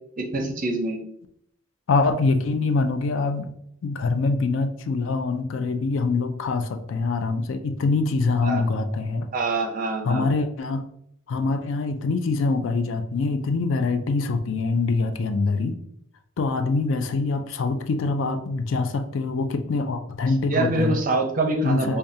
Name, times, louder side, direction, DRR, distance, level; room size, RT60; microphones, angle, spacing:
voice 1, 0.2-1.0 8.4-8.6 9.3-10.3 20.5-22.0, right 2 dB, 40° right, 2 dB, 0.6 m, -25 dB
voice 2, 1.9-3.5 3.8-9.3 10.0-10.8 11.3-15.8 16.4-21.0 21.6-22.0, left 3 dB, 60° left, 8 dB, 0.4 m, -24 dB
4.7 x 2.3 x 2.7 m, 0.72 s
head